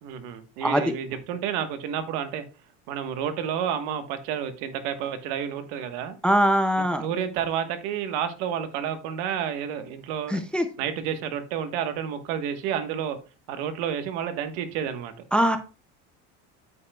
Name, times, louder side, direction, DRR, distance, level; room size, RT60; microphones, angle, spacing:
voice 1, 0.0-2.4 2.9-6.2 7.0-10.4 10.8-13.2 13.5-15.1, right 8 dB, 85° right, 9 dB, 1.3 m, -30 dB
voice 2, 0.6-0.9 6.2-7.0 10.3-10.7 15.3-15.6, equal, 5° left, 8 dB, 0.3 m, -22 dB
9.0 x 8.4 x 2.3 m, 0.33 s
cardioid pair, 175°, 31 cm